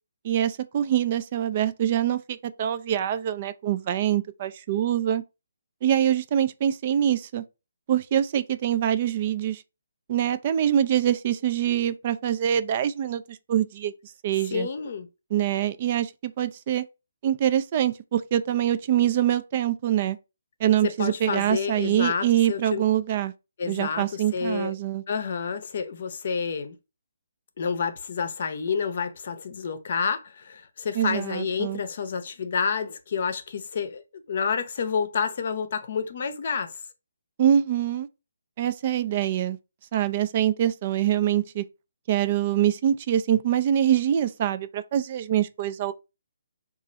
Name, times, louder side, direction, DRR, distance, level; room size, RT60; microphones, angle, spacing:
voice 1, 0.2-5.2 5.8-7.4 7.9-9.6 10.1-13.9 14.2-14.7 15.3-16.8 17.2-20.2 20.6-23.3 23.7-25.0 30.9-31.8 37.4-38.1 38.6-39.6 39.9-41.6 42.1-45.9, right 10 dB, 40° right, 0.3 m, -24 dB
voice 2, 14.5-15.1 21.0-22.8 23.6-24.7 25.1-26.8 27.6-36.7, left 6 dB, 50° left, 0.6 m, -29 dB
3.0 x 2.4 x 3.8 m
figure-of-eight pair, 140°, 0 cm